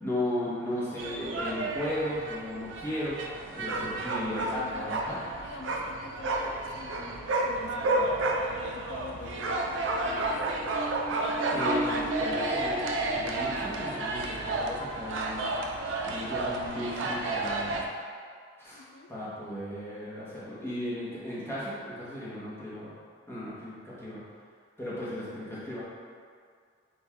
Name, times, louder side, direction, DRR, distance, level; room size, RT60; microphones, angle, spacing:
voice 1, 0.0-3.2 3.5-5.2 11.5-12.9 13.1-15.4 16.1-17.8 18.6-22.9 23.3-24.2 24.8-25.8, left 1 dB, 10° left, -9 dB, 0.9 m, -35 dB
sound 1, 1.0-17.9, right 2 dB, 75° right, 0.4 m, -31 dB
voice 2, 4.4-4.9 5.4-8.2 8.7-9.7 10.0-10.3 11.1-12.5 18.7-19.1 25.2-25.8, left 4 dB, 60° left, 4 dB, 0.3 m, -46 dB
sound 2, 10.0-16.3 16.7-16.8, right 1 dB, 35° left, 1.2 m, -39 dB
4.6 x 2.5 x 3.4 m, 2.1 s
head